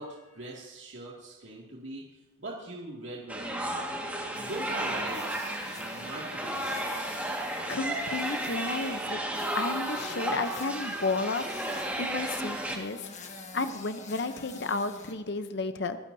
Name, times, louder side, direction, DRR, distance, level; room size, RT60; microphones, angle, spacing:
voice 1, 0.0-2.0 2.4-4.0 4.4-7.2, right 2 dB, 65° right, -3 dB, 2.3 m, -42 dB
sound 1, 3.3-12.8, right 1 dB, 10° right, 1.7 m, -33 dB
sound 2, 4.3-15.1, left 3 dB, 35° left, 1.6 m, -46 dB
voice 2, 7.7-9.2 9.5-11.4 12.0-13.1 13.5-16.0, left 3 dB, 55° left, 9 dB, 0.7 m, -32 dB
25.0 x 14.0 x 2.7 m, 0.98 s
head